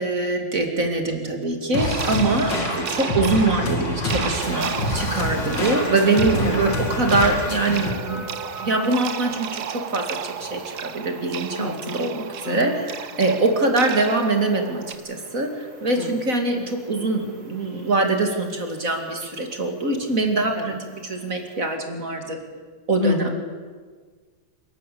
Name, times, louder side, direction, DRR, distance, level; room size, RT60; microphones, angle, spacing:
voice 1, 0.0-8.3 8.6-22.4 22.9-23.3, right 2 dB, 50° right, 4 dB, 2.8 m, -23 dB
sound 1, 1.7-7.9, left 2 dB, 85° left, 2.9 m, -27 dB
sound 2, 1.8-15.0, right 9 dB, 70° right, 1.4 m, -34 dB
sound 3, 4.3-21.7, left 1 dB, 90° right, 5.2 m, -41 dB
voice 2, 11.6-12.1 12.4-12.8 16.0-16.1 20.5-20.7 23.0-23.5, left 3 dB, 30° left, 3 dB, 2.0 m, -28 dB
28.0 x 12.0 x 8.6 m, 1.5 s
omnidirectional pair, 1.9 m